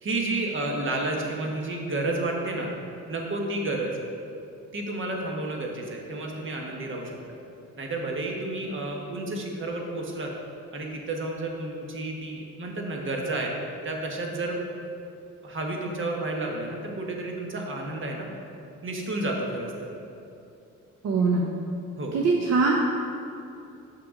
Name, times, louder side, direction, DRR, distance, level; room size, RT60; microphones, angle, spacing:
voice 1, 0.0-2.7 3.1-4.0 4.7-7.4 7.8-10.3 10.7-13.5 13.8-14.6 15.4-18.3 18.8-19.9 22.0-22.2, right 2 dB, 40° right, 0 dB, 1.2 m, -31 dB
voice 2, 21.0-21.5 22.1-22.7, right 4 dB, 60° right, -1 dB, 0.7 m, -22 dB
6.8 x 6.0 x 3.6 m, 2.7 s
cardioid pair, 90°, 30 cm